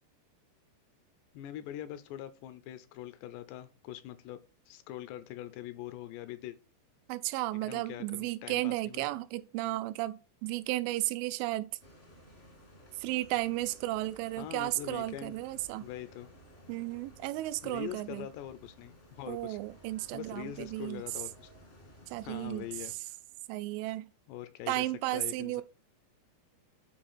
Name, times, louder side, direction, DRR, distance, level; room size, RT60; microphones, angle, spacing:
voice 1, 1.3-4.4 4.7-6.6 7.6-9.1 14.4-15.3 15.8-16.3 17.6-19.6 20.1-21.5 22.2-22.9 24.3-24.9 25.1-25.6, left 12 dB, 80° left, 2.6 m, -43 dB
voice 2, 7.1-11.7 13.0-15.9 16.7-18.3 19.3-21.0 22.1-22.6 23.5-24.1 24.7-25.6, right 17 dB, 90° right, 3.0 m, -34 dB
sound 1, 11.8-22.9, equal, 45° left, 0.7 m, -56 dB
9.2 x 4.2 x 4.3 m
omnidirectional pair, 5.4 m